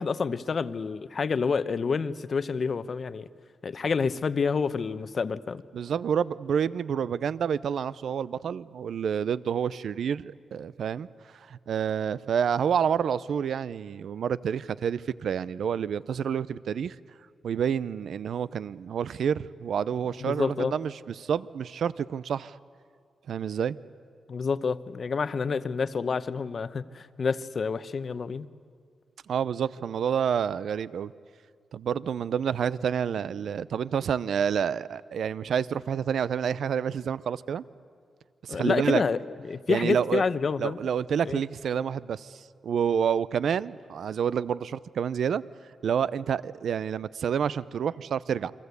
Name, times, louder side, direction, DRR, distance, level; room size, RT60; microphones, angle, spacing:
voice 1, 0.0-3.3 3.6-5.6 20.2-20.7 24.3-28.5 38.5-39.2 39.5-40.8 41.3-41.4, left 5 dB, 50° left, 14 dB, 0.8 m, -28 dB
voice 2, 5.7-11.1 11.3-17.0 17.4-22.6 23.3-23.8 29.3-31.1 31.7-37.6 38.4-39.0 39.7-40.2 40.6-45.4 45.8-48.5, right 8 dB, 75° right, 18 dB, 0.6 m, -28 dB
28.5 x 23.5 x 8.3 m, 2.1 s
cardioid pair, 95°, 0 cm